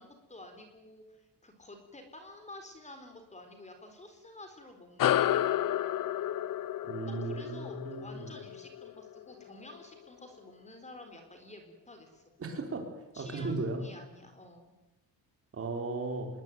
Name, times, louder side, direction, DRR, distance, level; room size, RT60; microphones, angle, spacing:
voice 1, 0.0-5.4 7.1-12.2 13.1-14.8, left 2 dB, 15° left, 6 dB, 3.9 m, -51 dB
sound 1, 5.0-9.8, left 12 dB, 50° left, 0.9 m, -31 dB
voice 2, 6.8-8.3 12.4-12.9 13.2-13.8 15.5-16.3, right 3 dB, 30° right, 4 dB, 5.2 m, -36 dB
26.5 x 22.5 x 9.5 m, 0.99 s
cardioid pair, 165°, 43 cm